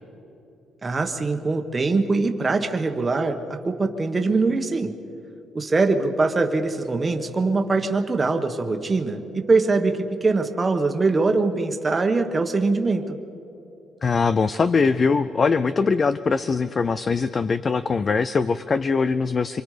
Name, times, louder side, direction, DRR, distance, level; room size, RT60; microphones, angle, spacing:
voice 1, 0.8-5.0 5.5-13.2, right 3 dB, 20° right, 5 dB, 1.4 m, -22 dB
voice 2, 14.0-19.6, left 4 dB, 30° left, 14 dB, 0.5 m, -22 dB
27.5 x 25.0 x 5.1 m, 2.9 s
cardioid pair, 145°, 0 cm